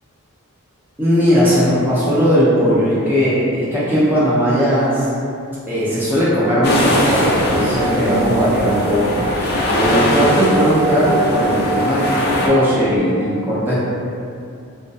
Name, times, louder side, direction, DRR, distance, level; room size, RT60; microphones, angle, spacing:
voice 1, 1.0-5.0 5.7-9.2 9.7-13.8, equal, 10° right, -10 dB, 0.5 m, -17 dB
Singing / Glass, 6.4-13.0, right 5 dB, 90° left, 0.6 m, -27 dB
sound 1, 6.6-12.5, left 1 dB, 45° left, 0.3 m, -21 dB
sound 2, 6.7-8.6, right 1 dB, 75° right, 0.7 m, -37 dB
2.2 x 2.2 x 2.6 m, 2.5 s
head